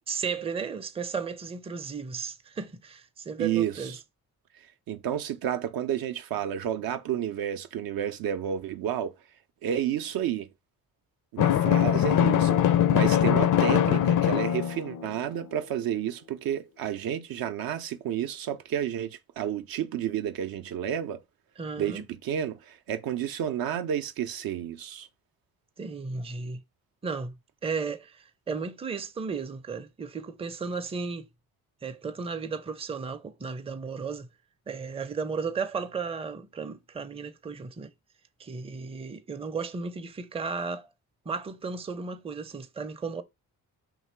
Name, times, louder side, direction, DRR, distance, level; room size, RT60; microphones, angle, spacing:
voice 1, 0.0-4.0 21.6-22.1 25.8-26.6 27.0-31.3 31.8-34.3 34.7-37.9 38.4-40.9 41.3-43.2, right 5 dB, 15° right, 0.5 m, -34 dB
voice 2, 3.4-4.0 4.9-9.1 9.6-10.5 11.3-21.2 21.8-25.1, right 10 dB, 65° right, 0.5 m, -31 dB
Drum, 11.4-15.2, left 10 dB, 55° left, 0.5 m, -22 dB
2.9 x 2.7 x 4.4 m
supercardioid pair, 55°, 39 cm